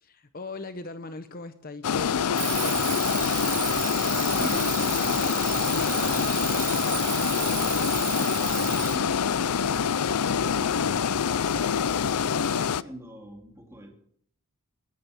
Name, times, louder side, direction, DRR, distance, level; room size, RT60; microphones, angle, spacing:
voice 1, 0.0-3.2, left 3 dB, 40° left, 10 dB, 0.8 m, -40 dB
sound 1, 1.8-12.8, left 7 dB, 85° left, 0.5 m, -25 dB
Alarm, 2.3-9.0, right 13 dB, 40° right, 0.7 m, -32 dB
voice 2, 4.3-6.7 7.5-9.8 10.5-12.2 12.7-13.9, right 1 dB, 10° right, 1 dB, 3.6 m, -43 dB
21.0 x 9.3 x 7.2 m, 0.65 s
head